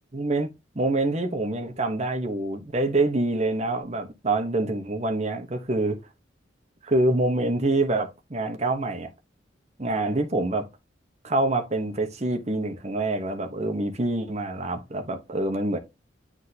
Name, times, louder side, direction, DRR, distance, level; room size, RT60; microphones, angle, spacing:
voice 1, 0.1-6.0 6.8-9.1 9.8-10.7 11.2-15.8, right 2 dB, 35° right, 1.0 m, -26 dB
9.6 x 3.6 x 2.8 m
head